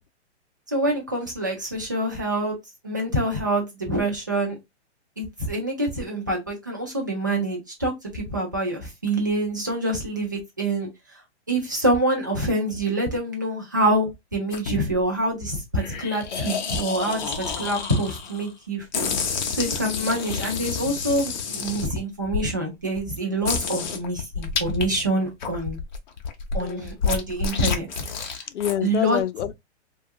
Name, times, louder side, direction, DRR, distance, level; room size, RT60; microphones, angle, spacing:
voice 1, 0.7-2.6 2.8-4.6 5.2-10.9 11.5-19.1 19.5-25.8 26.5-27.9 28.1-28.5 28.8-29.2, right 1 dB, 20° right, 0.3 m, -26 dB
sound 1, 14.5-15.0 15.8-18.5 18.9-22.5 23.0-23.1 23.4-24.9 25.2-28.7, left 5 dB, 40° left, 0.6 m, -29 dB
voice 2, 26.6-26.9 28.5-29.5, left 10 dB, 85° left, 0.5 m, -27 dB
3.0 x 2.3 x 2.6 m
hypercardioid pair, 170°, 34 cm